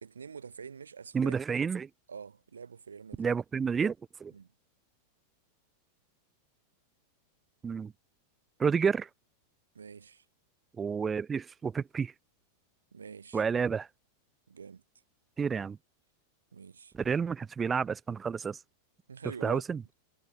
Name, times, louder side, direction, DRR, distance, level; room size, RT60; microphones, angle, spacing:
voice 1, 0.0-1.4 2.1-3.3 4.3-4.5 9.7-10.2 12.9-13.7 14.5-14.8 16.5-17.1 19.1-19.6, right 6 dB, 70° right, 2.6 m, -46 dB
voice 2, 1.1-1.9 3.2-3.9 4.2-4.3 7.6-7.9 8.6-9.1 10.8-12.1 13.3-13.9 15.4-15.8 17.0-18.6 19.4-19.8, right 6 dB, 20° right, 0.5 m, -30 dB
figure-of-eight pair, 90°, 0 cm